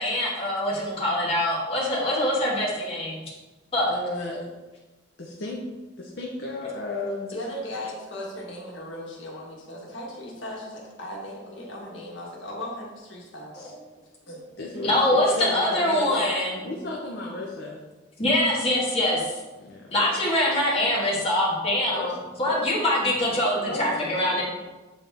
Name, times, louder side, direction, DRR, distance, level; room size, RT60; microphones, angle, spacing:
voice 1, 0.0-3.2 3.7-3.9 14.8-16.6 18.2-19.2 19.9-24.4, left 1 dB, 30° left, -5 dB, 1.6 m, -24 dB
voice 2, 3.9-4.4 5.2-5.6 6.0-7.3 13.5-13.7 14.6-16.3 16.6-17.8 19.6-20.1 21.9-22.1 22.5-22.6 23.6-24.4, left 2 dB, 60° left, -2 dB, 0.8 m, -34 dB
voice 3, 7.3-13.5 14.3-14.4, left 1 dB, 80° left, -3 dB, 1.6 m, -37 dB
7.5 x 4.0 x 3.4 m, 1.2 s
head